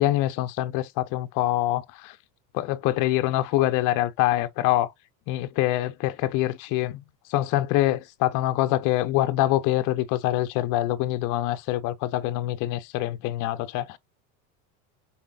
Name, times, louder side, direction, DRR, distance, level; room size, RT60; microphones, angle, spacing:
voice 1, 0.0-2.2 2.5-4.9 5.3-7.0 7.3-14.0, left 15 dB, 55° left, 0.7 m, -25 dB
5.3 x 4.2 x 2.3 m
supercardioid pair, 125°, 38 cm